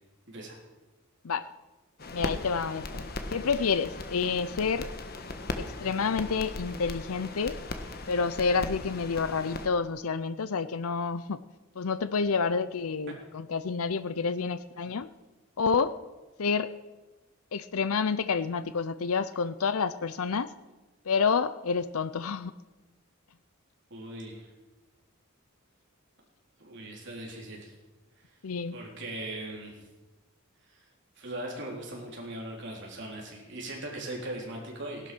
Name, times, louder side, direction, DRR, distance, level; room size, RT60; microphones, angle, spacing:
sound 1, 2.0-9.7, left 2 dB, 45° left, 1.3 m, -38 dB
voice 1, 2.1-3.1 3.3-4.9 5.6-7.6 8.1-11.4 11.8-15.1 15.6-15.9 16.4-16.7 17.5-20.5 21.1-22.5 28.4-28.8, left 5 dB, 80° left, 13 dB, 0.6 m, -29 dB
voice 2, 23.9-24.5 26.6-27.7 28.7-29.8 30.7-30.8 31.2-35.1, right 1 dB, 55° right, -1 dB, 4.0 m, -39 dB
17.5 x 11.5 x 6.2 m, 1.2 s
head